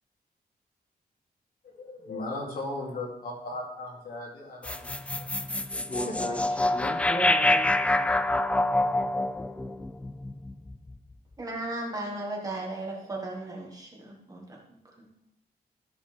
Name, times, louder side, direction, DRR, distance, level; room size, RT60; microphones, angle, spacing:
voice 1, 1.8-6.2, left 2 dB, 65° left, -2 dB, 2.8 m, -38 dB
sound 1, 4.6-11.0, left 1 dB, 10° left, 0.3 m, -26 dB
voice 2, 5.9-8.2, equal, 35° left, -1 dB, 2.2 m, -36 dB
voice 3, 11.4-15.1, right 2 dB, 20° right, -2 dB, 1.9 m, -36 dB
13.0 x 7.3 x 3.5 m, 0.78 s
wide cardioid pair, 180°, 16 cm